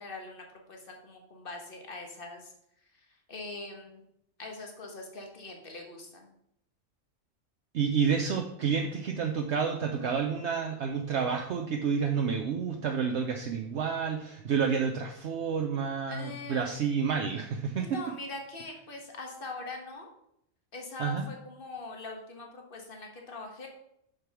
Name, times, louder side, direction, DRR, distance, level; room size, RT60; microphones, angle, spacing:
voice 1, 0.0-2.5 2.9-4.0 4.4-6.3 16.1-16.7 17.8-20.1 20.7-23.7, left 3 dB, 45° left, 1 dB, 1.7 m, -42 dB
voice 2, 7.7-18.0 21.0-21.3, right 6 dB, 65° right, 3 dB, 1.0 m, -29 dB
6.6 x 5.2 x 6.0 m, 0.77 s
omnidirectional pair, 1.3 m